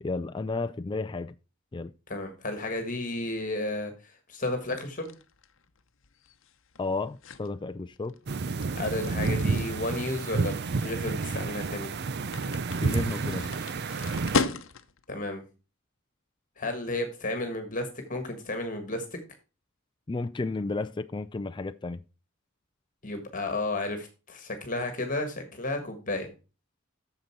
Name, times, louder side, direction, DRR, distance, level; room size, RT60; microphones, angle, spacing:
voice 1, 0.0-1.3 1.7-1.9 6.8-8.1 12.8-13.5 20.1-22.0, left 3 dB, 25° left, 0.4 m, -32 dB
voice 2, 2.1-5.1 8.7-11.9 15.1-15.4 16.6-19.0 23.0-26.3, left 2 dB, 40° left, 1.6 m, -32 dB
sound 1, 4.7-15.1, left 4 dB, 65° left, 0.9 m, -37 dB
sound 2, 8.3-14.4, right 4 dB, 55° right, 0.6 m, -30 dB
9.2 x 6.9 x 4.5 m
head